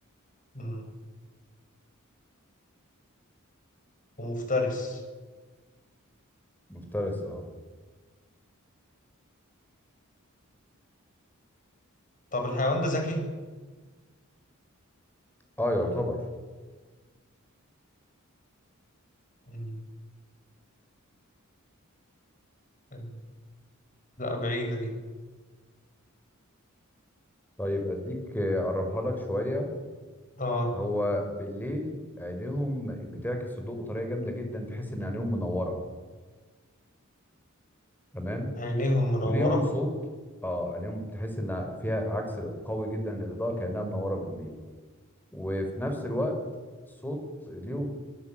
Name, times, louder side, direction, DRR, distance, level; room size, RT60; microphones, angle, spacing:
voice 1, 0.5-0.9 4.2-5.0 12.3-13.2 19.5-19.8 22.9-23.1 24.2-24.9 30.4-30.7 38.6-39.6, left 1 dB, 40° left, 4 dB, 6.7 m, -28 dB
voice 2, 6.7-7.5 15.6-16.2 27.6-29.7 30.7-35.8 38.1-38.5 39.2-39.9 40.4-44.5 45.3-46.4 47.0-47.8, left 1 dB, 10° left, 4 dB, 5.1 m, -31 dB
27.0 x 18.0 x 9.1 m, 1.4 s
head